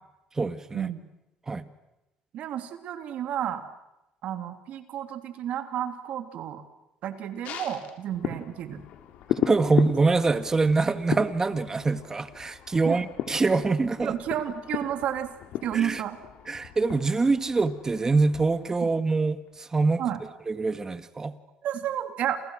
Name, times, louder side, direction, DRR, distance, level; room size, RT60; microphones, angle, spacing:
voice 1, 0.4-0.9 1.5-1.7 9.5-14.1 15.7-16.0 16.5-20.0 20.5-21.3, right 3 dB, 25° right, 11 dB, 1.9 m, -24 dB
voice 2, 2.3-3.6 4.2-6.6 7.0-8.8 12.8-13.0 14.0-15.3 15.6-16.2 18.8-18.9 20.0-20.2 21.6-22.4, right 10 dB, 65° right, 8 dB, 3.1 m, -31 dB
sound 1, 7.4-19.1 19.5-19.6, left 10 dB, 70° left, 3.5 m, -36 dB
30.0 x 28.5 x 6.5 m, 0.93 s
cardioid pair, 95°, 2 cm